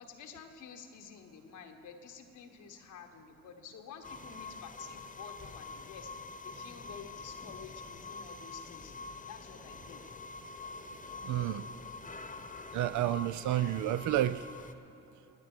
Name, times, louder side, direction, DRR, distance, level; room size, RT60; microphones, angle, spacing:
voice 1, 0.0-8.9 9.3-10.0, left 6 dB, 85° left, 4 dB, 1.2 m, -50 dB
sound 1, 4.0-14.7, left 4 dB, 25° left, 0.9 m, -46 dB
voice 2, 11.2-11.7 12.7-14.4, right 13 dB, 75° right, 15 dB, 0.5 m, -30 dB
18.0 x 8.0 x 6.0 m, 3.0 s
supercardioid pair, 55°, 30 cm